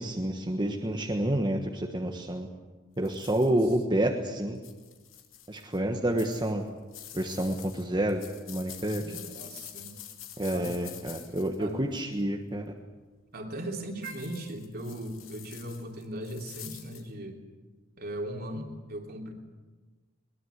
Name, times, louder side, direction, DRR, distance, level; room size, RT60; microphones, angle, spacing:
voice 1, 0.0-2.5 3.0-4.6 5.5-6.7 7.1-8.2 8.5-9.0 10.4-12.7, right 1 dB, 20° right, 2 dB, 1.4 m, -29 dB
sound 1, 3.0-3.7 4.5-5.8 6.2-12.1 14.0-17.1, left 11 dB, 65° left, 2.8 m, -47 dB
voice 2, 3.4-3.7 9.0-9.9 10.5-10.7 11.6-11.8 13.3-17.4 18.0-19.3, right 1 dB, 50° right, 2 dB, 3.3 m, -38 dB
22.5 x 20.5 x 8.1 m, 1.3 s
head